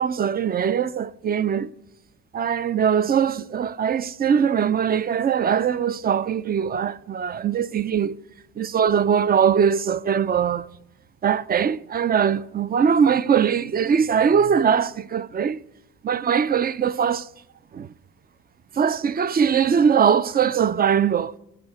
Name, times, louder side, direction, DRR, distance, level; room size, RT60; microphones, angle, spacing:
voice 1, 0.0-1.7 2.3-8.1 8.6-10.7 11.2-15.6 16.0-17.3 17.7-17.9 18.8-21.4, right 7 dB, 30° right, 0.4 m, -21 dB
13.5 x 4.8 x 7.9 m
cardioid pair, 90°, 30 cm